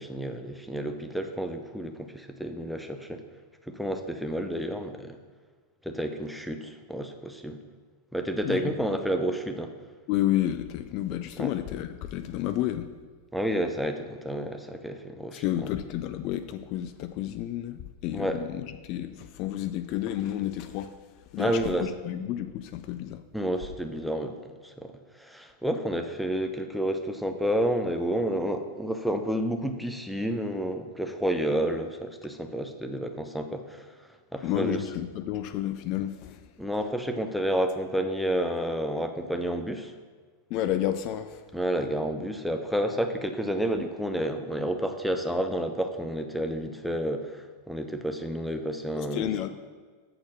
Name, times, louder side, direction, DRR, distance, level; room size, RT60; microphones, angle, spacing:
voice 1, 0.0-3.2 3.7-5.2 5.9-7.6 8.1-9.7 11.4-11.5 13.3-15.4 18.1-18.4 21.4-21.9 23.3-24.9 25.2-33.8 34.3-34.8 36.6-39.9 41.5-49.3, equal, ahead, 5 dB, 0.6 m, -30 dB
voice 2, 8.4-8.7 10.1-12.9 15.3-20.9 21.3-23.2 34.4-36.4 40.5-41.4 49.0-49.5, left 12 dB, 40° left, 9 dB, 0.3 m, -31 dB
7.7 x 4.2 x 6.3 m, 1.5 s
figure-of-eight pair, 90°, 0 cm